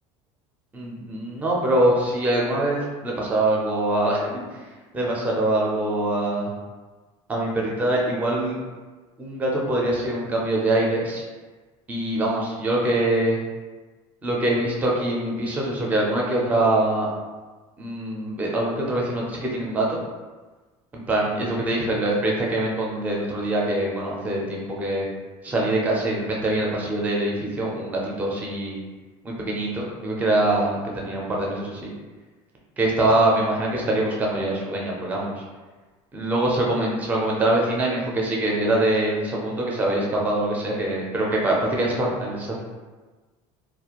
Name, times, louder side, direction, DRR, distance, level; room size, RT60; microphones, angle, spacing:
voice 1, 0.7-4.4 4.9-6.5 7.3-8.6 9.2-11.2 11.9-13.4 14.2-17.1 17.8-20.0 20.9-25.1 25.4-28.8 29.2-31.9 32.8-35.4 36.1-42.6, right 1 dB, 10° right, -3 dB, 0.4 m, -24 dB
2.4 x 2.1 x 2.8 m, 1.3 s
cardioid pair, 160°, 14 cm